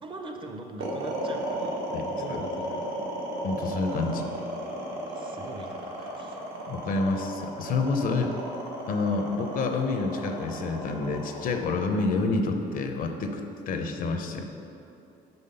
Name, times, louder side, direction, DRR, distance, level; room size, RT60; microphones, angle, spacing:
voice 1, 0.0-2.9 5.1-6.4, right 2 dB, 30° right, 4 dB, 0.6 m, -42 dB
sound 1, 0.8-13.1, right 1 dB, 80° right, 1.1 m, -34 dB
voice 2, 1.9-2.4 3.4-4.3 6.7-8.3 8.9-13.4 13.7-14.5, left 3 dB, 55° left, 5 dB, 0.5 m, -28 dB
5.6 x 3.5 x 5.5 m, 2.8 s
cardioid pair, 110°, 17 cm